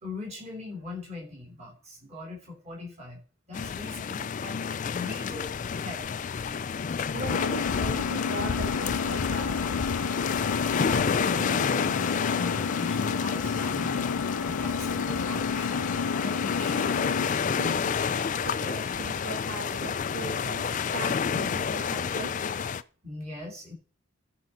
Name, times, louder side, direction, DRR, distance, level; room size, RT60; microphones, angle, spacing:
voice 1, 0.0-3.2 3.5-4.6 4.9-6.0 10.7-14.2 14.4-16.9 23.0-23.7, left 3 dB, 30° right, 0 dB, 3.1 m, -40 dB
sound 1, 3.5-22.8, left 6 dB, 35° left, 0.3 m, -30 dB
voice 2, 7.1-9.6 17.5-17.9 18.4-20.6 20.9-22.3, right 2 dB, 70° right, 2 dB, 2.0 m, -38 dB
Engine, 7.3-17.3, left 5 dB, 85° left, 0.5 m, -31 dB
13.5 x 5.4 x 4.3 m, 0.39 s
head